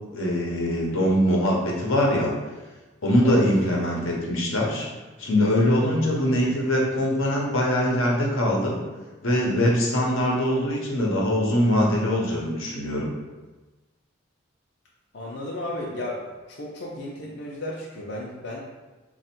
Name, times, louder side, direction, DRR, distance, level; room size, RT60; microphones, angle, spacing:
voice 1, 0.1-2.3 3.0-4.9 5.2-8.8 9.2-13.1, equal, 85° left, -2 dB, 0.8 m, -22 dB
voice 2, 15.1-16.2 16.5-18.6, left 1 dB, 55° left, -4 dB, 0.5 m, -34 dB
3.3 x 2.4 x 4.3 m, 1.2 s
head